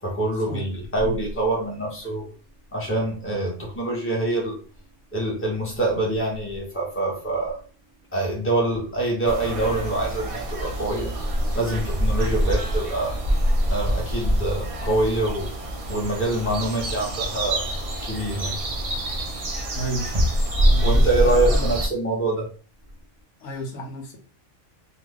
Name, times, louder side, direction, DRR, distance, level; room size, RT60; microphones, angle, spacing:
voice 1, 0.0-2.3 2.7-4.6 5.1-7.6 8.1-11.1 11.5-13.2 13.7-15.5 15.9-17.7 18.0-18.5 20.8-22.5, right 2 dB, 10° left, -3 dB, 1.1 m, -25 dB
sound 1, 9.2-21.9, equal, 50° right, 0.4 m, -25 dB
voice 2, 19.7-20.3 20.6-21.8 23.4-24.2, right 2 dB, 80° left, 1 dB, 1.1 m, -32 dB
2.7 x 2.3 x 3.5 m, 0.38 s
omnidirectional pair, 1.3 m